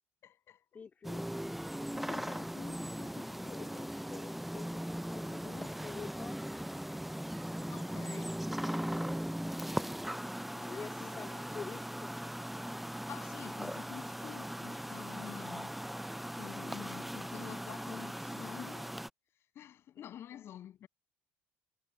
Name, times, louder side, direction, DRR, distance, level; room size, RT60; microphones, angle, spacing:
voice 1, 0.2-0.6 7.7-8.4 10.6-11.5 13.1-15.8 16.3-19.0 19.5-20.9, left 11 dB, 55° left, 7.4 m, -49 dB
voice 2, 0.7-1.2 1.9-6.4 10.5-12.2 20.0-20.5, left 5 dB, 35° left, 3.7 m, -48 dB
sound 1, 1.0-19.1, equal, ahead, 0.5 m, -39 dB
hypercardioid pair, 75°, 5 cm